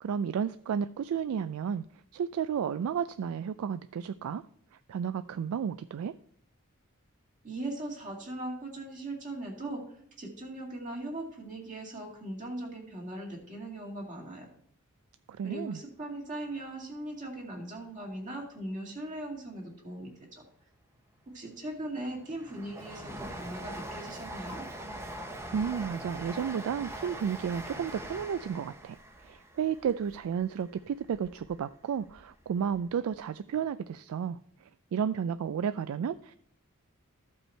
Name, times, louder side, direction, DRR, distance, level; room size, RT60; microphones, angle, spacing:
voice 1, 0.0-1.8 2.1-4.4 4.9-6.1 15.3-15.8 25.5-29.0 29.2-36.3, right 7 dB, 80° right, 13 dB, 0.3 m, -32 dB
voice 2, 7.4-9.8 10.2-14.5 15.4-20.4 21.3-24.6, right 1 dB, 35° right, 0 dB, 2.1 m, -39 dB
Train, 21.4-31.5 32.0-32.9 33.1-33.2, right 1 dB, 10° right, 0.7 m, -43 dB
13.5 x 5.4 x 4.4 m, 0.67 s
head